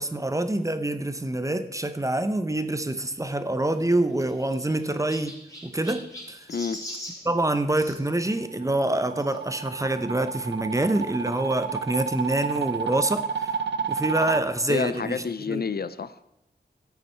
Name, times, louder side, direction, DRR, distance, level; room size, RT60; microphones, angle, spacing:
voice 1, 0.0-5.3 5.6-6.5 7.2-13.6 13.9-15.7, right 1 dB, 20° right, 10 dB, 0.8 m, -26 dB
Chirp tweet, 3.7-8.0 9.2-9.4 10.1-10.2 10.4-10.5 11.7-11.8, equal, 20° left, 3.4 m, -42 dB
voice 2, 6.5-6.8 14.7-16.2, left 5 dB, 60° left, 14 dB, 0.5 m, -29 dB
sound 1, 8.2-14.4, right 6 dB, 80° right, 0.7 m, -30 dB
13.5 x 8.3 x 4.5 m, 0.87 s
wide cardioid pair, 80°, 18 cm